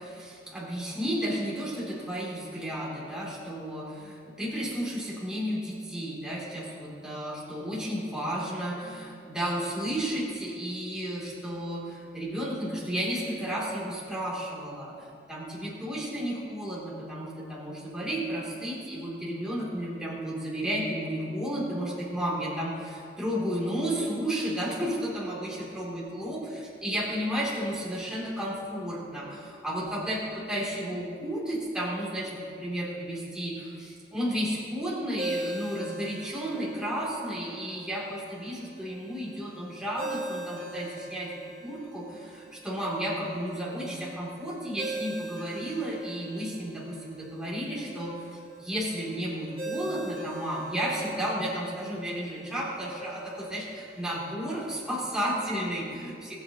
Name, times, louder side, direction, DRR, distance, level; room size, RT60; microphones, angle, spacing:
voice 1, 0.0-14.9 15.3-41.3 41.6-56.4, equal, 5° right, -7 dB, 3.0 m, -33 dB
Ringtone, 35.2-54.3, right 1 dB, 35° right, 3.3 m, -42 dB
21.5 x 8.6 x 3.0 m, 2.5 s
head